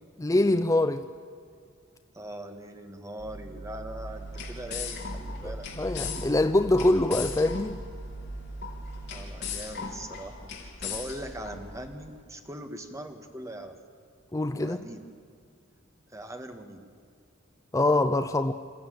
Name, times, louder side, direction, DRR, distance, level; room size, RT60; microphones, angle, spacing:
voice 1, 0.2-1.1 5.8-7.8 14.3-14.8 17.7-18.5, left 2 dB, 15° left, 8 dB, 0.5 m, -24 dB
voice 2, 2.1-5.7 9.1-13.7 14.5-15.1 16.1-16.9, right 1 dB, 15° right, 5 dB, 1.7 m, -41 dB
sound 1, 3.2-9.3, right 2 dB, 50° right, 7.3 m, -42 dB
sound 2, 3.9-12.1, left 5 dB, 60° left, 3.1 m, -39 dB
27.5 x 14.0 x 9.4 m, 2.2 s
head